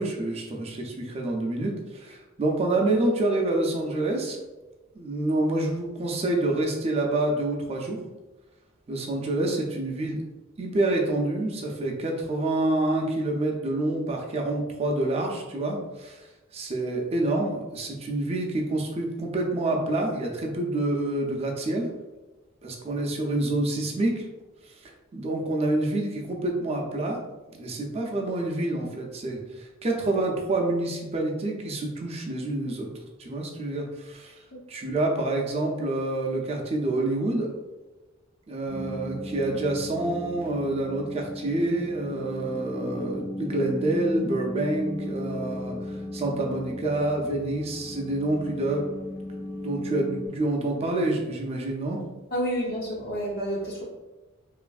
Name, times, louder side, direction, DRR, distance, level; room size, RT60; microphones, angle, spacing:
voice 1, 0.0-4.4 4.9-8.0 8.9-10.2 10.6-16.2 16.5-21.9 22.6-24.2 25.1-27.2 27.5-32.9 33.2-34.3 34.7-37.5 38.5-48.8 49.6-52.0, right 2 dB, 30° right, 0 dB, 0.4 m, -27 dB
sound 1, 38.7-50.3, left 1 dB, 65° left, 1.3 m, -36 dB
voice 2, 52.3-53.8, equal, 45° left, -5 dB, 0.6 m, -29 dB
3.0 x 2.5 x 2.3 m, 1.1 s
head